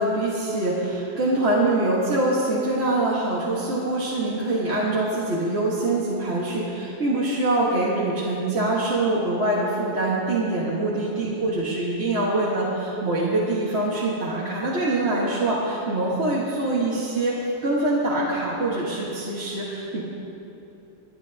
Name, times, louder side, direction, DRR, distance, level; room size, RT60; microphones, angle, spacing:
voice 1, 0.0-17.4 17.6-20.0, right 2 dB, 35° right, -7 dB, 1.8 m, -24 dB
28.0 x 10.0 x 2.9 m, 3.0 s
omnidirectional pair, 2.1 m